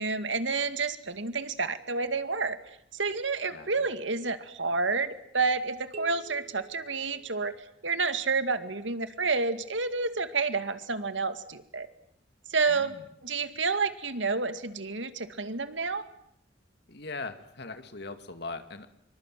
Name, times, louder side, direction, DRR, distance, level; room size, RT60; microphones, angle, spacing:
voice 1, 0.0-2.6 2.9-7.5 7.8-11.9 12.5-13.0 13.2-16.0, right 4 dB, 85° right, 10 dB, 2.2 m, -29 dB
voice 2, 3.5-3.9 12.7-13.1 16.9-18.9, left 3 dB, 60° left, 8 dB, 2.4 m, -40 dB
sound 1, 5.9-7.9, right 4 dB, 35° right, 1.3 m, -48 dB
26.0 x 24.0 x 9.3 m, 0.72 s
head